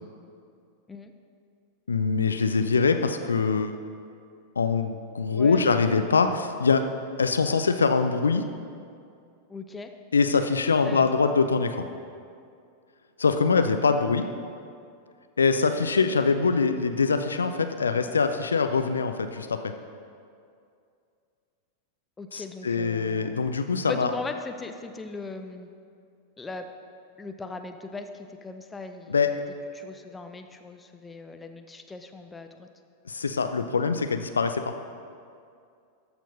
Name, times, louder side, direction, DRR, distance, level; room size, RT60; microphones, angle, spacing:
voice 1, 1.9-3.8 4.6-6.9 7.2-8.5 10.1-11.9 13.2-14.3 15.4-19.7 22.3-24.1 29.1-29.3 33.1-34.7, left 4 dB, 75° left, 8 dB, 0.4 m, -23 dB
voice 2, 5.3-5.7 9.5-9.9 10.9-11.1 13.5-13.6 22.2-23.4 23.9-25.7 26.4-26.7 27.2-29.1 29.7-32.7, left 3 dB, 10° left, 6 dB, 0.6 m, -39 dB
13.5 x 4.5 x 5.3 m, 2.4 s
figure-of-eight pair, 90°, 0 cm